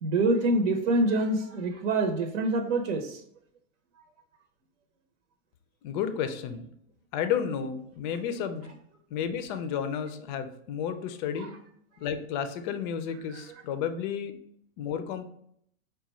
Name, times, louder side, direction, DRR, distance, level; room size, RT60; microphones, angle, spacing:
voice 1, 0.0-3.2 11.4-11.5 13.3-13.4, right 2 dB, 70° right, 5 dB, 0.8 m, -26 dB
voice 2, 5.8-6.6 7.1-8.7 9.1-11.5 12.0-14.4 14.8-15.3, left 8 dB, 35° left, 10 dB, 0.4 m, -32 dB
4.9 x 2.3 x 4.1 m, 0.70 s
supercardioid pair, 135°, 40 cm